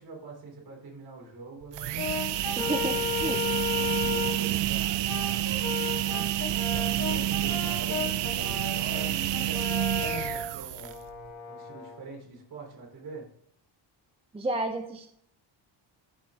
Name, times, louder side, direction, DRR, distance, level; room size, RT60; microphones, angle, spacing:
voice 1, 0.0-1.9 2.4-5.4 6.0-6.3 6.7-11.0 11.5-13.3, right 3 dB, 50° right, -1 dB, 3.3 m, -44 dB
sound 1, 1.6-11.1, right 13 dB, 65° right, 0.6 m, -29 dB
Brass instrument, 1.9-4.5 5.0-12.0, left 7 dB, 40° left, 2.0 m, -35 dB
voice 2, 2.6-3.0 3.2-3.4 14.3-15.1, right 2 dB, 15° right, 5 dB, 0.5 m, -31 dB
13.0 x 4.3 x 3.5 m, 0.67 s
cardioid pair, 160°, 46 cm